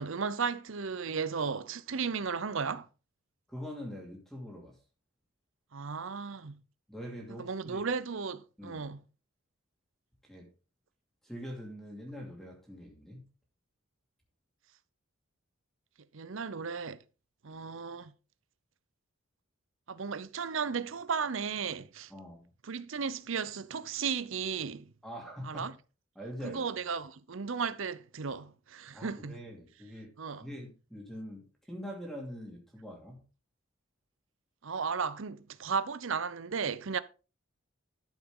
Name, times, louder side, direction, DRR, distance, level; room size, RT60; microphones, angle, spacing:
voice 1, 0.0-2.9 5.7-6.6 7.4-9.0 16.1-17.0 17.4-18.1 19.9-22.1 22.6-24.9 25.4-25.7 26.4-29.4 30.2-30.5 34.6-37.0, right 5 dB, 65° right, 0.7 m, -35 dB
voice 2, 3.5-4.8 6.9-7.9 8.6-8.8 10.2-10.5 11.2-13.2 22.1-22.5 25.0-25.7 26.2-26.8 28.9-33.2, equal, ahead, 2.4 m, -44 dB
12.5 x 7.0 x 3.7 m
head